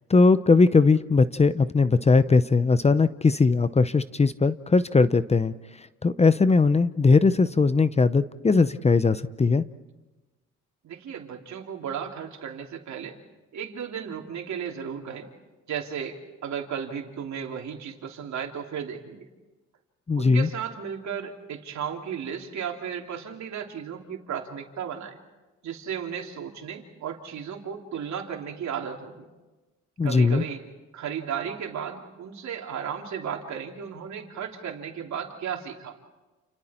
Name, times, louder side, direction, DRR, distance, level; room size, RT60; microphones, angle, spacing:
voice 1, 0.1-9.6 20.1-20.5 30.0-30.4, left 4 dB, 20° left, 14 dB, 0.7 m, -20 dB
voice 2, 10.8-13.2 13.5-15.3 15.7-19.3 20.2-25.2 25.6-29.2 30.0-30.6 30.9-36.0, right 8 dB, 65° right, 2 dB, 3.3 m, -34 dB
29.5 x 29.5 x 4.4 m, 1.1 s
cardioid pair, 90°, 30 cm